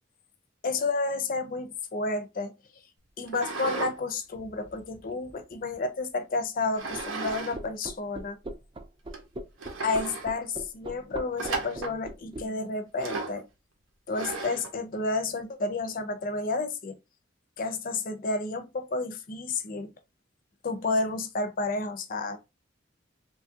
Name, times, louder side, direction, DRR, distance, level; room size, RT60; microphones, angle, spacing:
voice 1, 0.6-2.5 3.2-8.4 9.8-13.4 14.1-17.0 17.6-19.9 20.6-22.4, left 3 dB, 45° left, 0.5 m, -31 dB
sound 1, 3.3-4.0 4.4-5.7 6.8-7.6 7.8-7.9 8.6-8.7 9.1-9.2 9.6-10.3 11.4-12.0 13.0-13.4 14.1-14.7, right 3 dB, 85° right, 0.7 m, -35 dB
sound 2, 6.9-12.5, right 1 dB, 25° right, 0.4 m, -39 dB
3.1 x 2.3 x 2.7 m
head